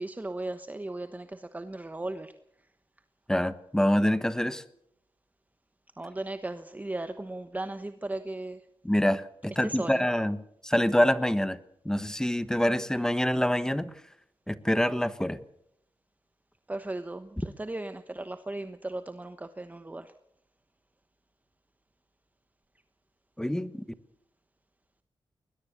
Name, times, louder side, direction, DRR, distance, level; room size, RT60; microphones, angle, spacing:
voice 1, 0.0-2.3 6.0-8.6 9.6-10.0 16.7-20.1, right 2 dB, 15° right, 9 dB, 1.1 m, -36 dB
voice 2, 3.3-4.6 8.8-11.6 11.8-13.9 14.5-15.4 23.4-23.8, equal, 5° left, 13 dB, 1.2 m, -26 dB
21.0 x 20.0 x 6.8 m, 0.74 s
wide cardioid pair, 100°, 10 cm